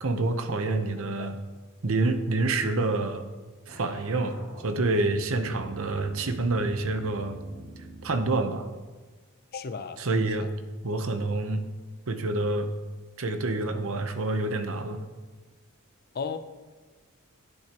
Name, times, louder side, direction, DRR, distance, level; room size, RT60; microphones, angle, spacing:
voice 1, 0.0-1.4 1.8-3.2 3.7-7.4 8.0-8.7 10.0-10.5 10.8-11.6 12.1-12.7 13.2-15.0, right 2 dB, 65° right, 8 dB, 0.9 m, -27 dB
voice 2, 0.7-1.3 9.5-10.0 10.4-10.5 16.1-16.4, left 5 dB, 45° left, 11 dB, 0.5 m, -36 dB
sound 1, 3.7-8.4, right 1 dB, 85° right, 3.7 m, -45 dB
12.0 x 10.5 x 3.0 m, 1.3 s
head